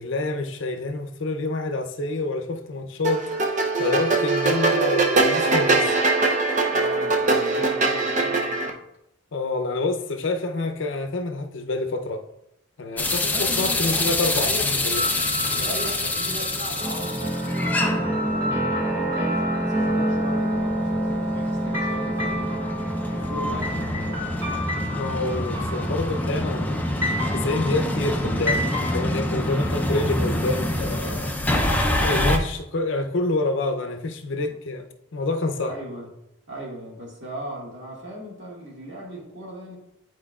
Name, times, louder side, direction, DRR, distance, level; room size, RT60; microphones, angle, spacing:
voice 1, 0.0-3.3 3.8-5.9 9.3-12.2 12.8-15.0 24.8-26.9 27.3-31.4 31.9-34.9 35.1-35.8, left 2 dB, 65° left, 0.6 m, -27 dB
sound 1, 3.0-8.7, right 3 dB, 35° right, 0.6 m, -21 dB
voice 2, 6.7-8.7 13.0-14.7 15.5-22.7 23.1-24.3 34.4-34.5 35.6-36.1 36.5-39.8, equal, 60° right, 1.8 m, -37 dB
sound 2, 13.0-32.4, left 1 dB, 10° left, 0.4 m, -27 dB
sound 3, 14.9-29.0, equal, 15° right, 2.4 m, -28 dB
9.9 x 4.5 x 2.3 m
head